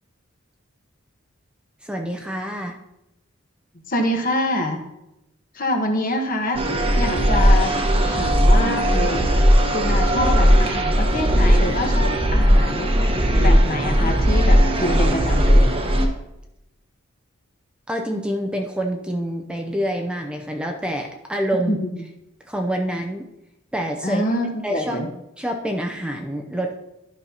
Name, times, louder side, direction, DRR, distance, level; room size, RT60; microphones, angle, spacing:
voice 1, 1.8-2.8 17.9-21.8 22.5-23.3 23.7-24.2 24.6-25.0 25.4-26.8, right 1 dB, 5° right, 3 dB, 0.5 m, -26 dB
voice 2, 3.9-4.9 5.5-6.6 7.0-7.7 8.0-9.3 9.7-12.9 13.4-15.7 21.7-21.9 24.0-25.1, left 1 dB, 45° left, 3 dB, 1.1 m, -25 dB
sound 1, 6.5-16.1, equal, 25° right, 0.9 m, -17 dB
12.0 x 5.5 x 2.8 m, 0.90 s
head